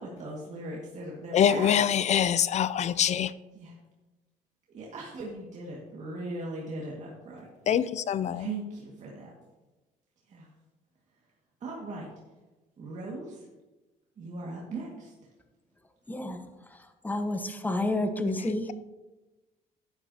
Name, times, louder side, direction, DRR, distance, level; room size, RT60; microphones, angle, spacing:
voice 1, 0.0-1.9 3.5-3.7 4.7-7.5 8.3-9.3 10.3-10.5 11.6-12.1 12.8-13.4 14.2-15.1, right 2 dB, 45° right, 2.0 m, -39 dB
voice 2, 1.3-3.3 7.7-8.5, left 9 dB, 45° left, 0.4 m, -24 dB
voice 3, 16.1-16.4 17.0-18.7, left 2 dB, 10° left, 0.9 m, -29 dB
12.0 x 9.1 x 2.8 m
cardioid pair, 110°, 17 cm